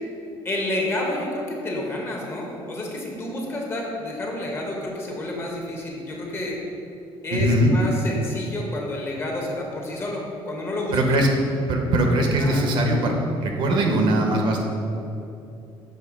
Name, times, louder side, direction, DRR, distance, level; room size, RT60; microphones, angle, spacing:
voice 1, 0.4-6.6 7.2-11.0 12.4-12.7, left 1 dB, 25° left, -1 dB, 0.8 m, -29 dB
voice 2, 7.3-7.7 10.9-11.3 11.7-13.1 13.4-14.6, right 1 dB, 60° right, 2 dB, 0.7 m, -20 dB
6.6 x 3.0 x 4.9 m, 2.8 s
cardioid pair, 165°, 10 cm